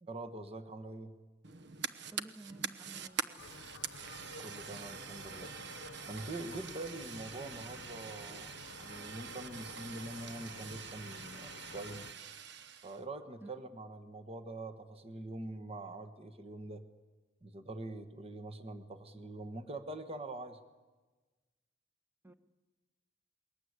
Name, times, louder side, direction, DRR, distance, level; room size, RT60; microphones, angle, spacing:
voice 1, 0.0-1.2 4.4-5.5 6.1-12.0 12.8-16.8 17.4-20.6, right 2 dB, 30° right, 8 dB, 1.4 m, -44 dB
Fire, 1.4-13.0, right 7 dB, 65° right, 0.9 m, -45 dB
voice 2, 2.1-3.7 13.4-13.5 22.2-22.3, right 2 dB, 10° right, 10 dB, 1.1 m, -53 dB
sound 1, 3.4-12.1, left 4 dB, 75° left, 0.9 m, -52 dB
28.0 x 21.5 x 8.1 m, 1.3 s
head